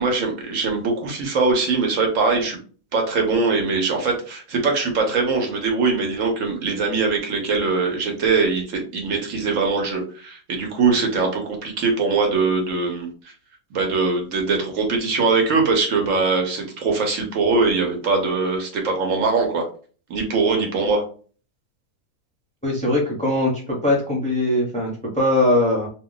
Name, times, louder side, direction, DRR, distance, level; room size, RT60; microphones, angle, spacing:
voice 1, 0.0-2.6 2.9-13.1 13.7-19.7 20.1-21.0, right 4 dB, 65° right, 2 dB, 1.1 m, -22 dB
voice 2, 22.6-25.9, left 1 dB, 10° left, -2 dB, 0.5 m, -21 dB
2.5 x 2.2 x 3.7 m, 0.40 s
omnidirectional pair, 1.5 m